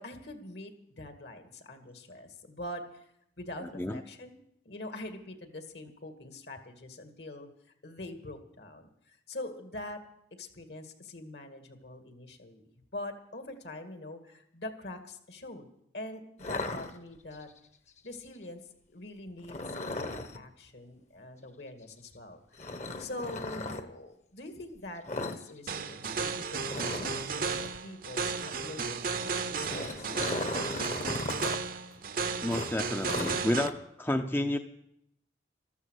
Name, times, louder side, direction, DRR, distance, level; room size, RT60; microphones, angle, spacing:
voice 1, 0.0-3.1 3.4-4.4 4.6-7.5 7.8-10.0 10.4-15.7 15.9-17.5 18.0-18.6 18.9-27.5 27.8-30.4, left 1 dB, 65° left, 6 dB, 2.1 m, -44 dB
voice 2, 3.6-4.0 32.4-34.6, left 1 dB, 10° left, 7 dB, 0.5 m, -31 dB
sound 1, 16.4-17.4 19.4-20.4 22.6-23.8 25.1-25.4 25.7-25.9 26.2-26.3 26.6-27.8 29.3-31.6 31.9-32.0 32.5-33.7, left 2 dB, 40° left, 1.0 m, -37 dB
sound 2, 25.7-33.7, right 5 dB, 50° right, 0.8 m, -34 dB
14.0 x 13.0 x 6.4 m, 0.74 s
head